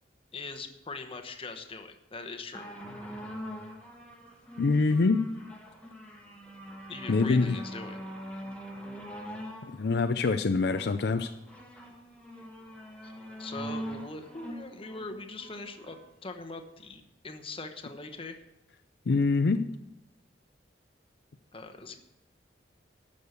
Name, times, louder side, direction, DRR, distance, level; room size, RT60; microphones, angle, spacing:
voice 1, 0.3-2.7 6.9-8.0 13.0-13.1 13.4-18.4 21.5-22.0, left 3 dB, 30° left, 6 dB, 1.0 m, -41 dB
sound 1, 2.5-16.1 16.9-17.0, equal, 5° left, 1.6 m, -43 dB
voice 2, 4.6-5.2 7.1-7.6 9.7-11.3 19.1-19.7, left 3 dB, 65° left, 8 dB, 0.5 m, -25 dB
12.5 x 6.5 x 6.6 m, 0.89 s
head